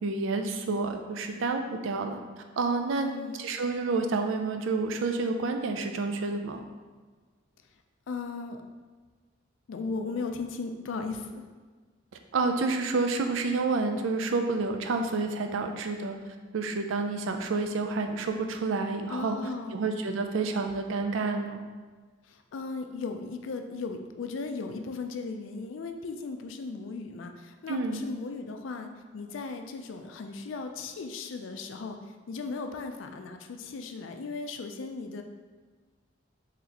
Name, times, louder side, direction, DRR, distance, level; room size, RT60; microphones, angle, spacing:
voice 1, 0.0-2.2 2.6-3.1 3.4-6.6 12.3-16.2 16.5-19.4 19.7-21.6 27.7-28.0, right 3 dB, 80° right, 6 dB, 0.4 m, -29 dB
voice 2, 3.0-3.4 8.1-8.6 9.7-11.4 19.1-19.8 22.3-35.2, left 4 dB, 80° left, 6 dB, 0.4 m, -37 dB
3.9 x 3.1 x 2.8 m, 1.4 s
head